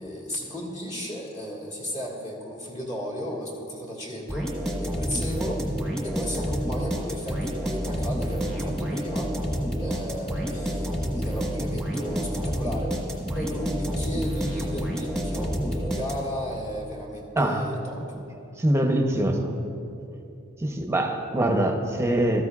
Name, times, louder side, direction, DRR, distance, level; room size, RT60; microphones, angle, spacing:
voice 1, 0.0-4.5 4.8-5.7 6.0-12.9 13.3-18.2, equal, 35° left, -4 dB, 1.9 m, -34 dB
sound 1, 4.3-16.5, equal, ahead, 1.4 m, -29 dB
voice 2, 17.3-17.7 18.1-18.2 18.6-19.6 20.6-22.4, right 1 dB, 15° right, 3 dB, 0.8 m, -24 dB
14.5 x 13.5 x 2.4 m, 2.7 s
head